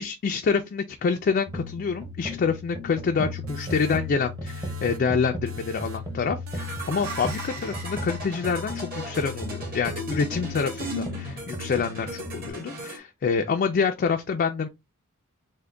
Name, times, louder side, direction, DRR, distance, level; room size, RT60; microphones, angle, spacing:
voice 1, 0.0-14.7, left 5 dB, 40° left, 0.3 m, -27 dB
sound 1, 1.5-12.5, left 2 dB, 15° right, 0.7 m, -36 dB
sound 2, 3.5-5.2 5.5-6.1 6.5-7.7, right 5 dB, 65° right, 0.6 m, -43 dB
sound 3, 6.6-13.0, right 1 dB, 40° right, 1.2 m, -37 dB
3.6 x 2.2 x 3.2 m
head